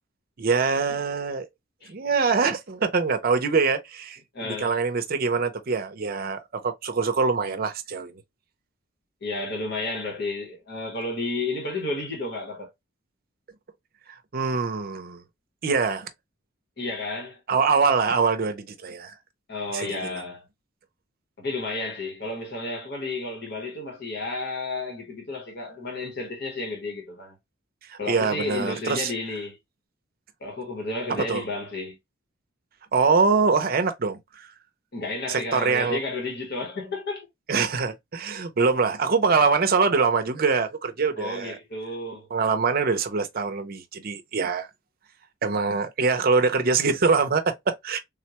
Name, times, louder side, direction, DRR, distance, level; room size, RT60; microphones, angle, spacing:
voice 1, 0.4-1.5 1.9-8.2 14.3-15.2 15.6-16.1 17.5-19.1 19.7-20.2 27.9-29.1 31.3-31.4 32.9-34.5 35.3-36.0 37.5-41.6 42.3-44.7 45.4-48.0, right 4 dB, 45° right, 0.5 m, -24 dB
voice 2, 4.3-4.7 9.2-12.7 16.8-17.4 19.5-20.5 21.4-27.3 28.0-29.6 30.4-32.0 34.9-37.3 41.2-42.3, left 2 dB, 55° left, 1.1 m, -32 dB
3.6 x 2.2 x 2.8 m
head